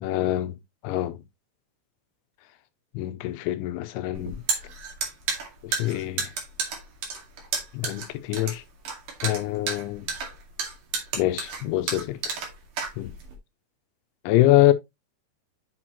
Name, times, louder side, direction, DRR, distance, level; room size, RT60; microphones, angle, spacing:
voice 1, 0.0-0.6 0.8-1.2 2.9-4.4 5.6-6.3 7.7-8.6 9.2-10.1 11.1-12.2 13.0-13.1 14.3-14.7, left 15 dB, 90° left, 3.1 m, -24 dB
sound 1, 4.1-13.4, right 5 dB, 55° right, 3.3 m, -31 dB
8.4 x 6.2 x 2.9 m
omnidirectional pair, 5.4 m